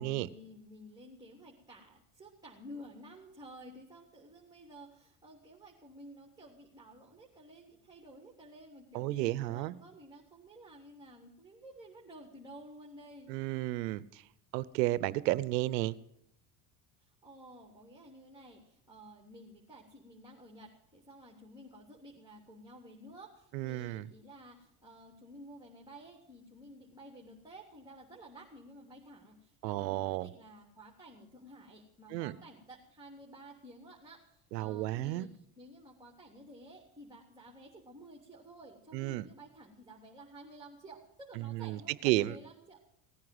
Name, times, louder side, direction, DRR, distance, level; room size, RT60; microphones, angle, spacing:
voice 1, 0.0-13.3 17.0-35.3 35.6-42.8, right 1 dB, 10° right, -2 dB, 3.3 m, -53 dB
voice 2, 8.9-9.7 13.3-14.2 14.5-15.9 23.5-24.1 29.6-30.3 32.1-32.3 34.5-35.3 38.9-39.2 41.4-42.3, right 17 dB, 85° right, 18 dB, 0.8 m, -32 dB
18.0 x 9.6 x 7.9 m, 0.76 s
supercardioid pair, 90°, 48 cm